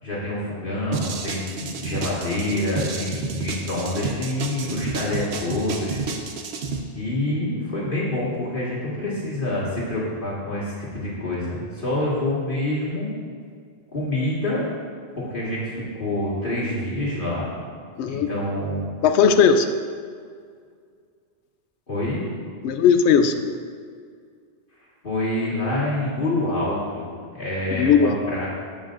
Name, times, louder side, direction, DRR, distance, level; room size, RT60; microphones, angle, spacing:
voice 1, 0.0-6.0 6.9-13.1 13.9-14.7 15.2-17.5 18.1-18.9 21.9-22.2 25.0-27.1 27.3-28.5, left 1 dB, 50° left, -8 dB, 2.0 m, -26 dB
sound 1, 0.9-6.8, right 4 dB, 75° right, 1.0 m, -30 dB
voice 2, 18.0-18.3 19.0-19.7 22.6-23.5 27.7-28.2, left 6 dB, 80° left, 8 dB, 0.8 m, -17 dB
14.5 x 5.1 x 2.6 m, 2.1 s
omnidirectional pair, 1.1 m